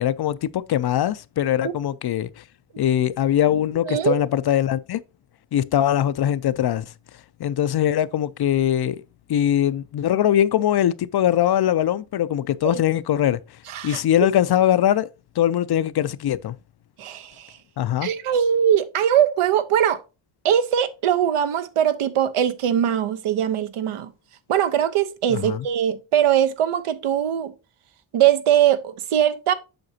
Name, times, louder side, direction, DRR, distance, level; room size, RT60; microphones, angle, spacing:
voice 1, 0.0-2.4 2.8-5.0 5.5-6.9 7.4-9.0 9.3-15.1 15.4-16.5 17.8-18.1 25.3-25.7, left 11 dB, 55° left, 0.5 m, -22 dB
voice 2, 13.7-14.0 17.0-17.6 18.0-20.0 20.4-24.1 24.5-27.5 28.1-29.5, right 10 dB, 80° right, 0.9 m, -21 dB
7.9 x 5.7 x 2.8 m
cardioid pair, 110°, 49 cm